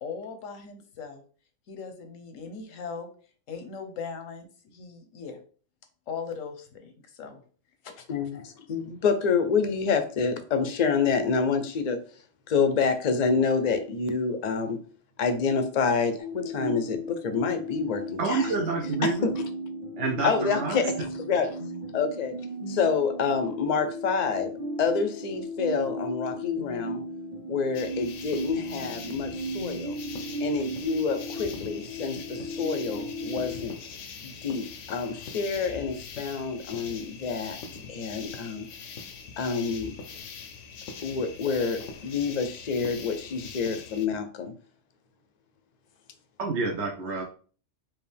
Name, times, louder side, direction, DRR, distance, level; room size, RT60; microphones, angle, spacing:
voice 1, 0.0-1.2 1.7-3.1 3.5-5.4 6.1-7.4 7.8-8.1 8.3-8.5, left 5 dB, 90° left, 7 dB, 1.2 m, -39 dB
voice 2, 8.1-12.0 12.5-14.8 15.2-18.5 19.0-19.5 20.2-21.6 21.9-22.4 22.7-24.5 24.8-27.0 27.5-30.0 30.4-33.8 34.2-37.6 37.9-38.7 39.4-39.9 41.0-44.5, left 5 dB, 45° left, 8 dB, 0.6 m, -27 dB
sound 1, 16.2-33.7, equal, 35° right, 1.0 m, -36 dB
voice 3, 18.2-19.3 20.0-20.8 46.4-47.2, right 3 dB, 70° right, 0 dB, 1.0 m, -28 dB
sound 2, 27.7-44.1, left 5 dB, 75° left, 0.9 m, -42 dB
4.7 x 2.8 x 3.4 m, 0.41 s
omnidirectional pair, 1.3 m